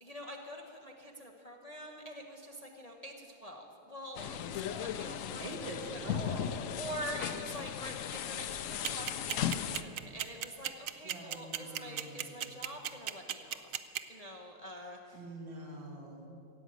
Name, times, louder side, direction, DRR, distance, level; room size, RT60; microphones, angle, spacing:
voice 1, 0.0-5.4 5.9-15.2, equal, 25° left, 1 dB, 0.8 m, -46 dB
sound 1, 4.2-9.8, left 10 dB, 85° left, 0.7 m, -37 dB
voice 2, 5.4-6.7 8.7-8.8 11.0-12.6 15.1-16.3, right 1 dB, 90° right, 0 dB, 3.0 m, -44 dB
sound 2, 8.8-14.0, right 11 dB, 70° right, 0.8 m, -34 dB
16.0 x 8.2 x 9.1 m, 2.6 s
omnidirectional pair, 2.0 m